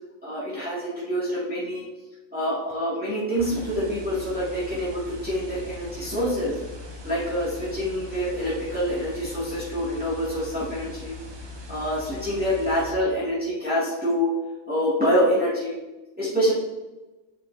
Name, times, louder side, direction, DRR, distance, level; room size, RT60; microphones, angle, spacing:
voice 1, 0.2-1.9 2.3-6.5 7.0-11.1 11.7-14.3 14.7-15.7 16.2-16.5, equal, 10° right, -10 dB, 2.1 m, -26 dB
sound 1, 3.4-12.9, left 2 dB, 25° right, 0.7 m, -40 dB
7.5 x 5.6 x 2.7 m, 1.1 s
omnidirectional pair, 1.2 m